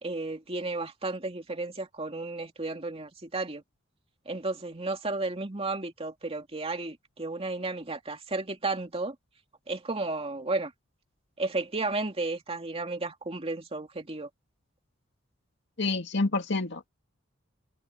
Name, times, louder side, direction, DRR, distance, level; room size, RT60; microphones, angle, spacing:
voice 1, 0.0-3.6 4.3-9.2 9.7-10.7 11.4-14.3, right 3 dB, 30° right, 2.6 m, -33 dB
voice 2, 15.8-16.9, left 3 dB, 60° left, 2.1 m, -28 dB
head